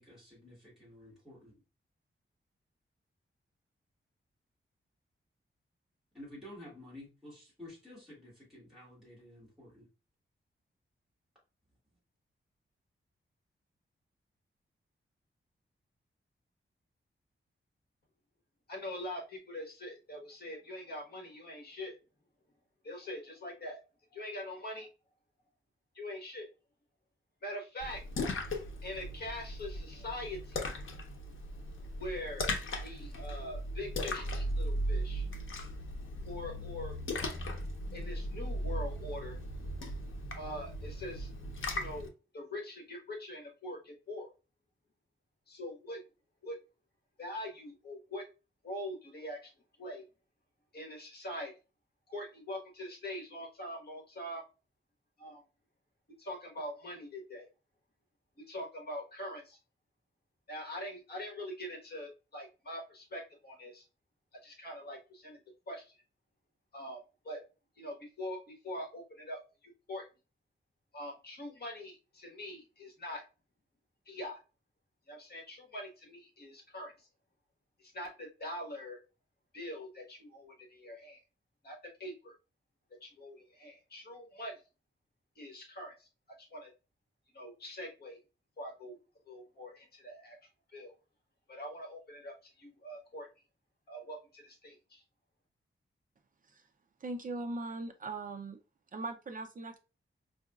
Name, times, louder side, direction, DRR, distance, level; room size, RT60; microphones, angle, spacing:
voice 1, 0.0-1.6 6.1-9.9, left 1 dB, ahead, -4 dB, 1.9 m, -51 dB
voice 2, 18.7-22.0 22.8-23.8 24.1-24.9 25.9-26.5 27.4-28.0 28.8-30.7 32.0-32.5 32.8-35.3 36.2-37.0 37.9-39.4 40.3-41.3 41.7-44.3 45.5-46.0 46.4-46.6 47.2-48.2 48.6-49.5 49.8-50.0 50.7-51.5 52.1-54.4 55.2-55.4 56.2-57.5 58.4-59.6 60.5-63.8 64.4-65.4 65.7-66.0 66.7-67.0 67.2-67.4 67.8-70.1 70.9-73.2 74.1-74.4 75.1-77.1 77.8-79.0 79.5-81.2 81.6-82.3 83.0-84.6 85.4-86.1 86.4-86.7 87.3-88.2 88.6-89.0 89.3-90.4 90.7-90.9 91.5-93.3 93.9-95.0, left 1 dB, 50° left, 0 dB, 1.2 m, -43 dB
Splash splatter, 27.8-42.1, left 1 dB, 70° left, 0.7 m, -37 dB
voice 3, 97.0-98.6 98.9-99.8, right 2 dB, 40° right, 6 dB, 0.5 m, -39 dB
4.7 x 2.6 x 2.3 m, 0.30 s
wide cardioid pair, 170°, 21 cm